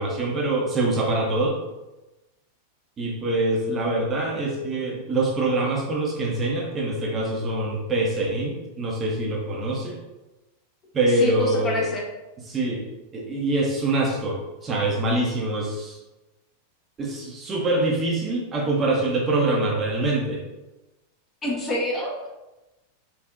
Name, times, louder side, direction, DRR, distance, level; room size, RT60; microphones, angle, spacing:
voice 1, 0.0-1.6 3.0-9.9 10.9-11.9 12.5-12.8 13.1-16.0 17.0-20.4, right 2 dB, 25° right, -2 dB, 0.6 m, -24 dB
voice 2, 11.1-12.0 21.4-22.3, left 1 dB, 20° left, -3 dB, 0.8 m, -26 dB
3.4 x 2.4 x 2.4 m, 1.0 s
figure-of-eight pair, 90°, 0 cm